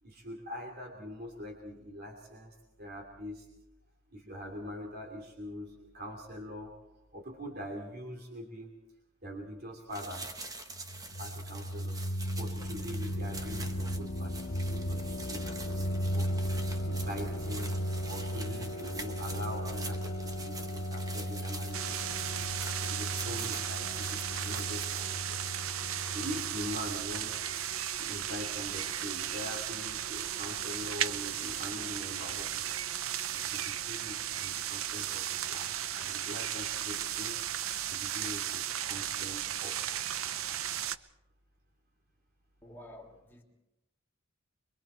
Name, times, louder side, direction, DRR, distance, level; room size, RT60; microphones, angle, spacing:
voice 1, 0.0-3.5 4.1-6.7 7.1-8.7 9.2-10.3 11.2-12.0 12.4-16.3 16.8-17.8 18.1-22.4 22.8-25.5 26.1-27.5 28.0-32.8 33.3-37.4 37.8-40.6, equal, 50° right, 2.9 m, -43 dB
sound 1, 9.9-25.0, right 3 dB, 20° right, 1.2 m, -45 dB
sound 2, 10.7-27.5, equal, 80° left, 1.4 m, -36 dB
sound 3, 21.7-41.0, right 10 dB, 85° right, 0.6 m, -35 dB
voice 2, 42.6-43.4, left 1 dB, 10° left, 2.9 m, -50 dB
26.0 x 23.0 x 4.5 m
head